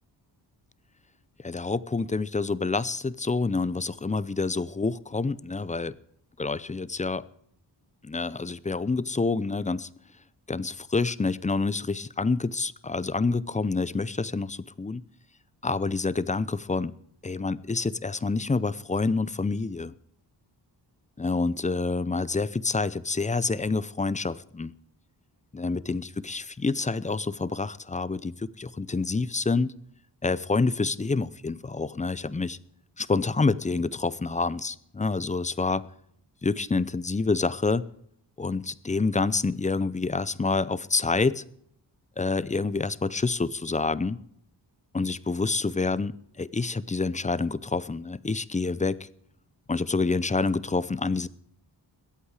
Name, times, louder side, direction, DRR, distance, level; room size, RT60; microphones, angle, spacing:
voice 1, 1.4-5.9 6.4-7.2 8.0-9.9 10.5-15.0 15.6-16.9 17.2-19.9 21.2-24.7 25.5-29.7 30.2-32.6 33.0-35.8 36.4-37.9 38.4-41.4 42.2-44.2 44.9-49.1 49.7-51.3, left 3 dB, 15° left, 18 dB, 0.5 m, -27 dB
21.5 x 8.4 x 4.9 m, 0.67 s
wide cardioid pair, 90°, 43 cm